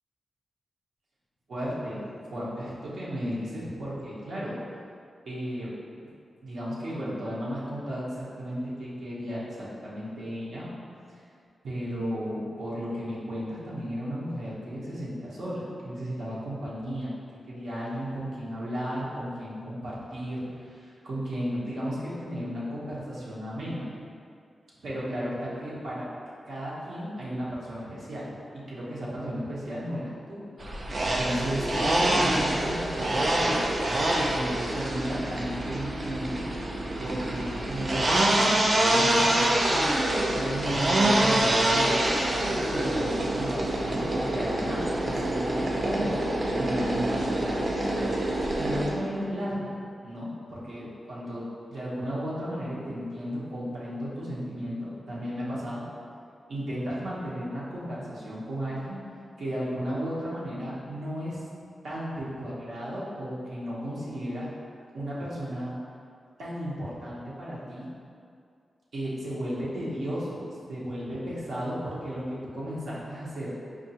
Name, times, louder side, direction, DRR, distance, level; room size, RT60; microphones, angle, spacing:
voice 1, 1.5-4.6 5.3-5.7 6.4-10.7 11.1-11.2 11.6-17.1 17.5-23.9 24.8-26.1 26.5-33.7 34.2-36.4 37.0-49.7 50.0-55.8 56.5-59.0 59.4-61.4 61.8-64.5 64.9-65.7 66.4-67.9 68.9-70.4 70.7-73.5, equal, 70° right, -8 dB, 0.7 m, -34 dB
sound 1, 30.6-48.9, right 1 dB, 35° right, 0.4 m, -26 dB
4.8 x 2.3 x 2.7 m, 2.4 s
wide cardioid pair, 160°, 0 cm